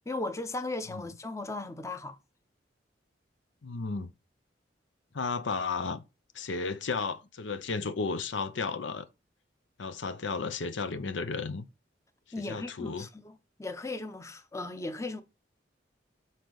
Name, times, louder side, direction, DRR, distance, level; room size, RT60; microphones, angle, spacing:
voice 1, 0.1-2.2 12.3-13.3 13.6-15.2, left 2 dB, 15° left, 0.6 m, -36 dB
voice 2, 3.6-4.1 5.1-6.0 6.3-9.1 9.8-11.6 12.4-13.1, left 4 dB, 90° left, 0.7 m, -33 dB
6.6 x 3.9 x 4.0 m
head